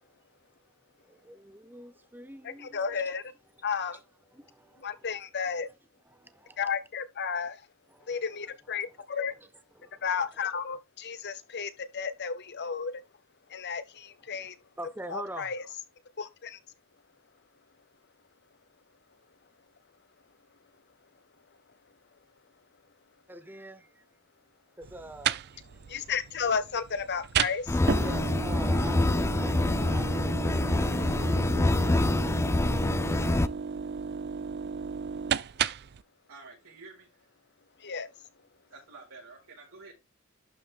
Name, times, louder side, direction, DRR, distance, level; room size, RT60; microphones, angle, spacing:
voice 1, 1.0-3.1 3.5-3.6 4.3-5.1 6.0-6.6 7.9-8.2 8.7-9.0 9.3-10.3 14.3-15.5 23.3-24.0 24.8-25.8 28.0-32.3, right 1 dB, 10° right, 0.8 m, -46 dB
voice 2, 2.6-3.2 3.6-4.0 4.8-5.7 6.6-7.6 8.1-9.3 10.0-12.9 13.5-14.5 15.1-15.6 16.2-16.6 25.9-27.8 37.8-38.1, left 6 dB, 55° left, 1.0 m, -33 dB
sound 1, 24.8-36.0, right 7 dB, 50° right, 0.4 m, -34 dB
sound 2, 27.7-33.5, left 2 dB, 10° left, 0.3 m, -26 dB
voice 3, 35.9-37.3 38.7-39.9, right 3 dB, 85° right, 4.5 m, -50 dB
11.5 x 4.7 x 3.6 m
head